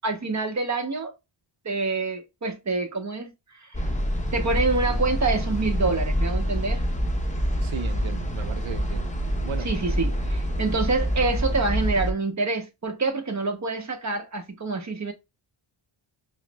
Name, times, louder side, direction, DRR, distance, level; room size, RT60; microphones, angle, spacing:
voice 1, 0.0-1.1 1.6-3.3 3.6-3.7 4.3-6.8 9.6-15.1, right 3 dB, 35° right, 0.9 m, -27 dB
sound 1, 3.7-12.1, equal, 15° left, 0.6 m, -26 dB
voice 2, 7.6-9.7, right 7 dB, 70° right, 0.6 m, -36 dB
5.5 x 2.1 x 2.2 m
wide cardioid pair, 75°, 50 cm